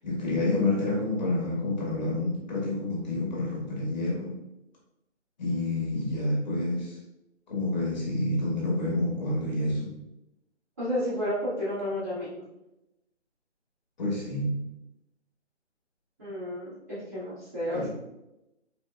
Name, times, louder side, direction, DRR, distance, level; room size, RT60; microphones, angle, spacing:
voice 1, 0.0-4.4 5.4-7.0 7.5-9.9 14.0-14.6 17.7-17.9, left 2 dB, 40° left, -3 dB, 1.3 m, -28 dB
voice 2, 10.8-12.4 16.2-17.9, left 1 dB, 15° right, -13 dB, 0.7 m, -31 dB
4.3 x 3.3 x 2.4 m, 0.91 s
figure-of-eight pair, 150°, 36 cm